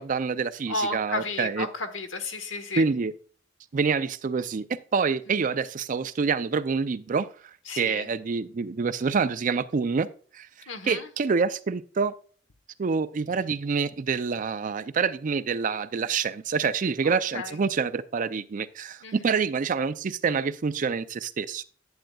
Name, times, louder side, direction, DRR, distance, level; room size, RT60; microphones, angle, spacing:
voice 1, 0.0-1.7 2.8-3.1 3.7-7.3 7.8-10.1 10.3-10.5 10.8-12.1 12.8-21.6, right 5 dB, 45° right, 0.4 m, -27 dB
voice 2, 0.7-2.8 5.3-5.4 7.7-8.1 10.7-11.1 17.0-17.6 19.0-19.3, left 3 dB, 85° left, 1.1 m, -33 dB
10.5 x 8.8 x 2.3 m
head